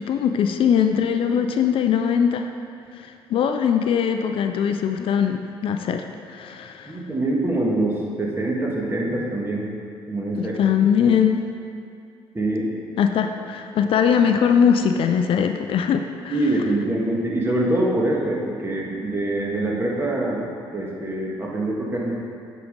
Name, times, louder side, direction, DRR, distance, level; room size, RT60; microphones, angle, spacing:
voice 1, 0.0-2.5 2.9-7.0 10.3-11.4 13.0-16.4, left 7 dB, 60° left, 6 dB, 0.4 m, -21 dB
voice 2, 6.9-9.7 10.1-10.6 12.3-12.7 16.3-22.2, right 1 dB, 25° right, -3 dB, 1.6 m, -24 dB
9.0 x 5.0 x 3.7 m, 2.4 s
supercardioid pair, 75°, 10 cm